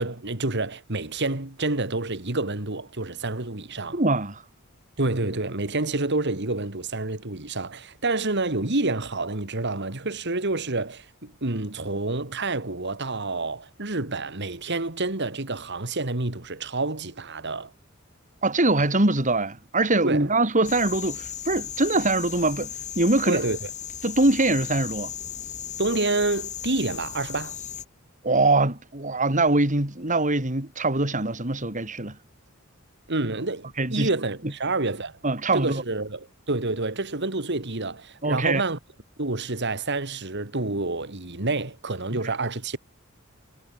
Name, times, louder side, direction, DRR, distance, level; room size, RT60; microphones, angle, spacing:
voice 1, 0.0-4.0 5.0-17.7 20.0-20.3 23.3-23.7 25.8-27.6 33.1-35.2 35.5-38.8 39.2-42.8, right 2 dB, 55° right, 2.5 m, -28 dB
voice 2, 3.9-4.4 18.4-23.4 24.0-25.1 28.2-32.2 33.8-34.1 35.2-35.8 38.2-38.6 42.2-42.3, right 2 dB, 40° right, 3.9 m, -23 dB
sound 1, 20.6-27.8, left 9 dB, 35° left, 4.9 m, -36 dB
head